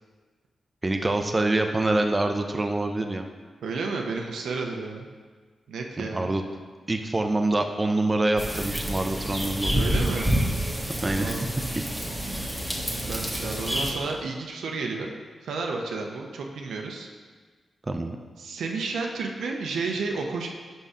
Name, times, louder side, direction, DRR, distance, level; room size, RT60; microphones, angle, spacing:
voice 1, 0.8-3.3 6.0-6.4 6.9-9.8 11.0-11.5 17.8-18.2, right 2 dB, 30° right, 5 dB, 0.6 m, -25 dB
voice 2, 3.6-5.1 5.7-6.3 9.8-10.4 11.1-11.5 12.8-15.1 15.4-17.1 18.4-20.5, right 4 dB, 85° right, 1 dB, 0.7 m, -31 dB
sound 1, 8.4-13.9, equal, ahead, 1.3 m, -28 dB
5.5 x 5.4 x 4.9 m, 1.5 s
cardioid pair, 50°, 0 cm